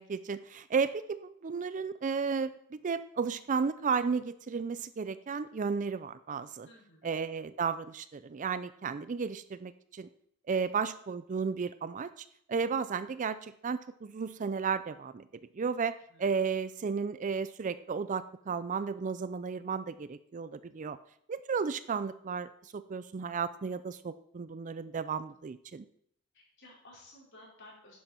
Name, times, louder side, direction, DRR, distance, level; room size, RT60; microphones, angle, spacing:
voice 1, 0.0-6.7 7.0-10.1 10.5-12.1 12.5-15.3 15.6-15.9 16.2-21.0 21.3-25.8, right 5 dB, 35° right, 14 dB, 0.4 m, -33 dB
voice 2, 6.6-7.1 10.5-10.6 16.1-16.3 26.3-28.0, left 1 dB, 55° left, -4 dB, 4.8 m, -55 dB
10.5 x 10.5 x 4.4 m, 0.67 s
head